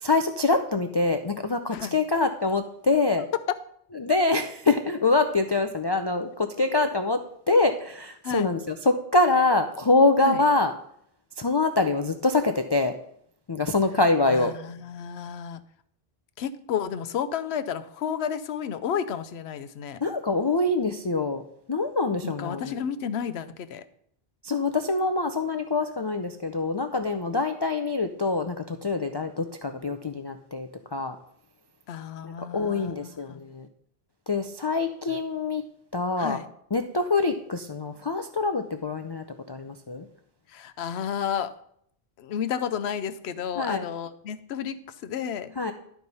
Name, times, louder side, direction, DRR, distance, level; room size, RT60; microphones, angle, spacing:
voice 1, 0.0-3.3 4.0-10.7 11.4-12.9 13.5-14.5 20.0-21.4 21.7-22.8 24.4-31.2 32.2-33.7 34.3-35.6 35.9-36.4 36.7-40.1 43.6-43.9 45.6-45.7, left 3 dB, 40° left, 6 dB, 0.3 m, -25 dB
voice 2, 14.3-15.6 16.4-20.0 22.2-23.8 31.9-33.4 36.2-36.5 40.5-41.5 42.2-45.5, left 8 dB, 80° left, 11 dB, 0.9 m, -32 dB
11.0 x 4.6 x 5.4 m, 0.69 s
omnidirectional pair, 1.1 m